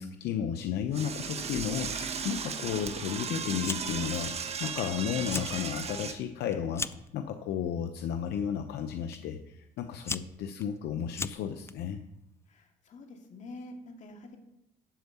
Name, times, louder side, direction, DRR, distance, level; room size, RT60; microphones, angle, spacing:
voice 1, 0.0-4.3 4.6-6.9 7.1-12.0, left 8 dB, 75° left, 6 dB, 0.8 m, -33 dB
Door / Toilet flush, 0.9-6.1, right 6 dB, 40° right, 1.1 m, -36 dB
Fire, 3.6-4.1 4.4-4.9 5.2-5.6 6.0-7.1 7.9-8.2 9.1-9.2 9.8-11.7, left 4 dB, 15° left, 0.4 m, -37 dB
voice 2, 12.5-14.4, left 2 dB, 45° left, 2 dB, 2.3 m, -47 dB
12.5 x 4.5 x 8.2 m, 0.85 s
cardioid pair, 110°, 17 cm